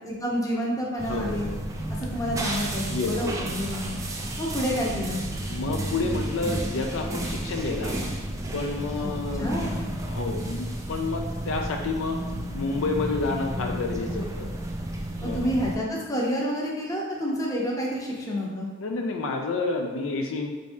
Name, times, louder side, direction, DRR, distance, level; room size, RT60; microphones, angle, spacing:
voice 1, 0.0-1.5 2.0-4.0 4.4-5.2 9.0-9.1 9.4-10.0 15.2-18.7, equal, 15° left, -3 dB, 0.7 m, -29 dB
sound 1, 1.0-15.8, right 1 dB, 15° right, 0.3 m, -32 dB
voice 2, 1.1-1.6 2.7-3.3 5.5-8.1 8.5-9.5 10.1-12.2 12.5-14.5 15.2-15.5 18.8-20.5, left 3 dB, 70° left, 3 dB, 0.4 m, -29 dB
4.1 x 2.7 x 3.5 m, 1.3 s
head